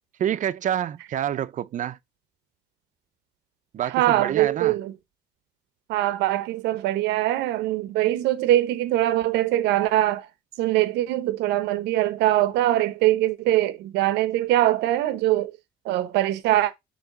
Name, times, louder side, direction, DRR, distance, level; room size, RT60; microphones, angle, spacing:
voice 1, 0.2-2.0 3.7-4.8, right 10 dB, 50° right, 0.7 m, -27 dB
voice 2, 3.9-4.9 5.9-10.3 10.6-15.5 15.8-16.7, right 14 dB, 85° right, 0.9 m, -22 dB
6.7 x 3.1 x 5.9 m
cardioid pair, 110°, 17 cm